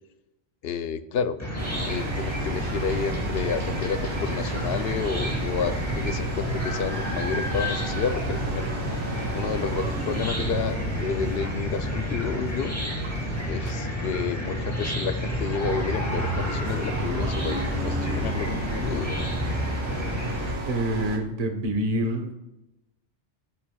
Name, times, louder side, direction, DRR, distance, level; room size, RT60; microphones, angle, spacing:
voice 1, 0.6-1.4 1.9-8.7 9.3-12.7 13.5-19.2, left 7 dB, 65° left, 11 dB, 0.8 m, -30 dB
Chicken rooster / Cricket, 1.4-20.5, equal, 15° left, 2.5 m, -30 dB
sound 1, 1.6-21.2, right 3 dB, 65° right, 1.4 m, -35 dB
voice 2, 20.7-22.3, right 1 dB, 35° right, 4 dB, 1.0 m, -26 dB
14.0 x 7.3 x 2.3 m, 0.96 s
omnidirectional pair, 1.2 m